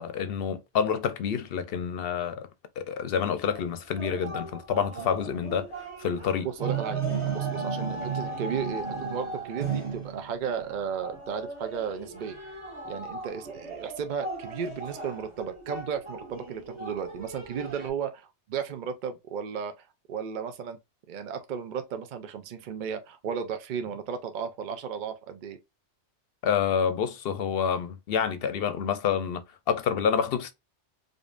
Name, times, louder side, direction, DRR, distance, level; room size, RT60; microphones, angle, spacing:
voice 1, 0.0-2.5 2.8-5.7 6.0-6.5 26.4-30.5, left 7 dB, 60° left, 0.7 m, -28 dB
sound 1, 3.5-17.9, right 5 dB, 25° right, 1.2 m, -35 dB
voice 2, 6.4-7.0 7.3-12.4 12.8-20.8 21.1-25.6, right 7 dB, 55° right, 0.5 m, -34 dB
5.1 x 2.6 x 2.4 m
omnidirectional pair, 1.2 m